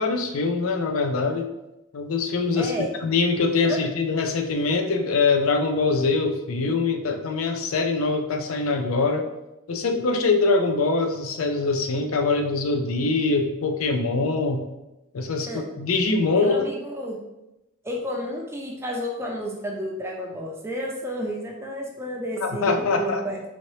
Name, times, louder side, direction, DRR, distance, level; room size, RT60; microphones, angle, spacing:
voice 1, 0.0-1.5 1.9-2.7 3.0-9.2 9.7-14.7 15.1-16.7 22.4-23.2, left 3 dB, 70° left, 5 dB, 0.5 m, -23 dB
voice 2, 2.6-2.9 3.6-3.8 15.5-15.6 16.4-17.2 17.8-23.4, equal, 10° right, -1 dB, 0.5 m, -31 dB
4.2 x 2.8 x 3.1 m, 0.94 s
head